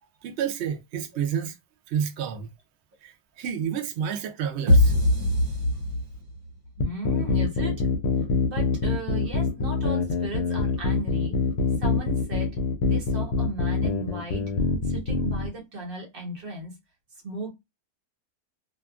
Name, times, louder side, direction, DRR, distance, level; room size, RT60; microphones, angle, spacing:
voice 1, 0.2-1.6 1.9-2.5 3.0-5.0, right 8 dB, 85° right, 0.5 m, -30 dB
sound 1, 4.7-6.5, left 1 dB, 55° right, 1.3 m, -21 dB
sound 2, 6.8-15.5, left 4 dB, 75° left, 1.1 m, -25 dB
voice 2, 6.8-7.8 8.5-11.4 11.8-14.5 14.8-16.7 17.2-17.5, right 2 dB, 40° right, 1.0 m, -36 dB
2.8 x 2.3 x 2.3 m
omnidirectional pair, 1.8 m